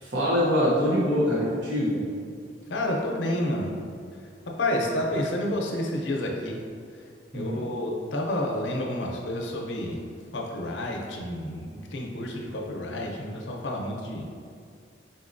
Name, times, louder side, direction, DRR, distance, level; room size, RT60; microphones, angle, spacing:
voice 1, 0.0-2.1 7.3-7.6, equal, 80° right, -7 dB, 0.8 m, -24 dB
voice 2, 2.7-3.7 4.6-6.5 6.9-7.0 7.3-10.0 10.3-14.2, left 1 dB, 85° left, 0 dB, 0.6 m, -29 dB
4.3 x 4.0 x 2.6 m, 2.2 s
head